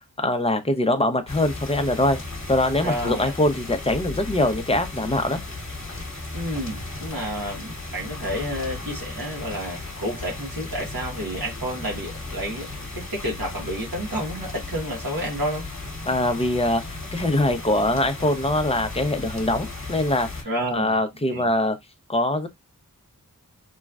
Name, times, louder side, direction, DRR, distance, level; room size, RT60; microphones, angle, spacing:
voice 1, 0.2-2.2 2.5-5.4 16.1-20.3 20.7-21.8 22.1-22.5, left 1 dB, 15° left, 0.6 m, -23 dB
sound 1, 1.3-20.4, left 2 dB, 50° left, 1.1 m, -35 dB
voice 2, 2.8-3.3 6.3-15.7 20.4-21.0 21.3-21.5, equal, 70° right, 1.2 m, -30 dB
3.0 x 2.3 x 2.4 m
wide cardioid pair, 45°, 36 cm